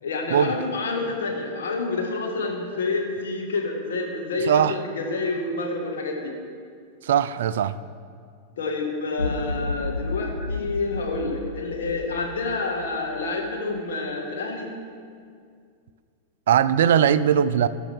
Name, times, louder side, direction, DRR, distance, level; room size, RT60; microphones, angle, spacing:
voice 1, 0.0-6.3 8.6-14.7, left 3 dB, 60° left, 1 dB, 1.7 m, -28 dB
voice 2, 4.5-4.8 7.0-7.8 16.5-17.7, right 9 dB, 60° right, 14 dB, 0.3 m, -20 dB
sound 1, 9.2-13.5, left 2 dB, 85° left, 0.5 m, -32 dB
18.5 x 6.5 x 3.6 m, 2.2 s
figure-of-eight pair, 90°, 0 cm